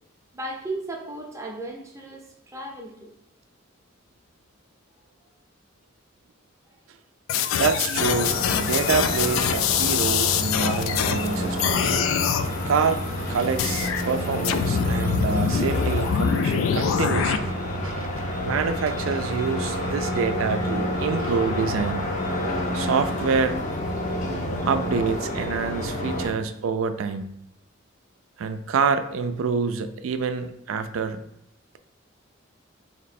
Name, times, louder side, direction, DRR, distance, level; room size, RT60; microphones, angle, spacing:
voice 1, 0.3-3.1, right 2 dB, 15° right, 0 dB, 0.6 m, -35 dB
sound 1, 7.3-11.3 11.6-12.5 13.6-14.0 14.4-17.4, left 8 dB, 80° left, 0.3 m, -24 dB
voice 2, 7.5-12.0 12.7-13.0 13.3-18.1 18.4-22.0 22.7-23.6 24.6-27.3 28.4-31.2, right 5 dB, 80° right, 9 dB, 0.4 m, -26 dB
sound 2, 7.9-26.3, left 1 dB, 35° left, 0.6 m, -29 dB
3.1 x 2.9 x 4.1 m, 0.75 s
head